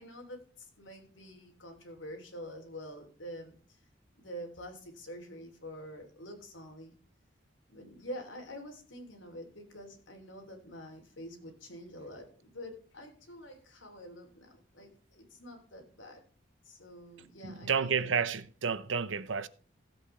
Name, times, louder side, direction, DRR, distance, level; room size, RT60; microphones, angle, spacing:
voice 1, 0.0-3.9 4.1-6.9 7.7-16.2 16.6-18.1, equal, 85° left, 3.3 m, -47 dB
voice 2, 17.4-19.5, right 6 dB, 85° right, 0.8 m, -31 dB
16.0 x 8.3 x 3.3 m
head